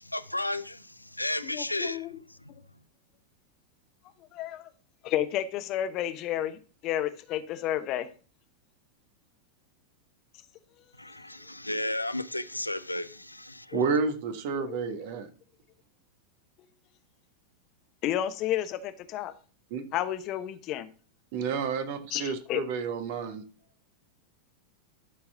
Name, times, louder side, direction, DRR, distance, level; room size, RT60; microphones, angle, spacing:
voice 1, 0.0-2.5 11.0-13.8, left 1 dB, 85° left, 0.5 m, -34 dB
voice 2, 1.4-2.2 4.3-4.7 5.0-8.1 13.7-13.8 14.6-15.0 18.0-19.3 19.9-20.9 22.1-22.6, left 12 dB, 40° left, 1.0 m, -31 dB
voice 3, 13.7-15.3 19.7-19.8 21.3-23.4, right 5 dB, 50° right, 1.5 m, -30 dB
12.0 x 4.6 x 5.7 m
figure-of-eight pair, 90°, 0 cm